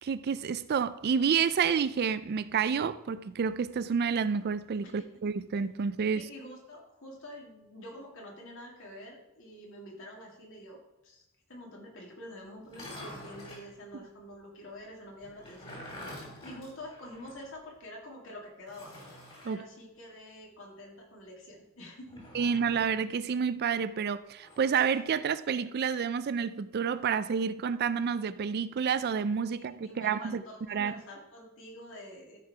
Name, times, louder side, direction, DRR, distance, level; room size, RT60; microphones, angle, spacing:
voice 1, 0.0-6.3 19.4-19.6 22.3-30.4 30.7-30.9, right 6 dB, 45° right, 0.4 m, -29 dB
voice 2, 6.1-11.2 11.5-18.9 19.4-22.5 29.5-32.4, left 1 dB, 60° left, 2.5 m, -47 dB
sound 1, 12.6-13.7 15.2-17.5 17.8-17.9 18.7-19.6 22.0-23.0 24.4-25.0, left 1 dB, 25° left, 2.6 m, -47 dB
14.0 x 4.6 x 4.8 m
head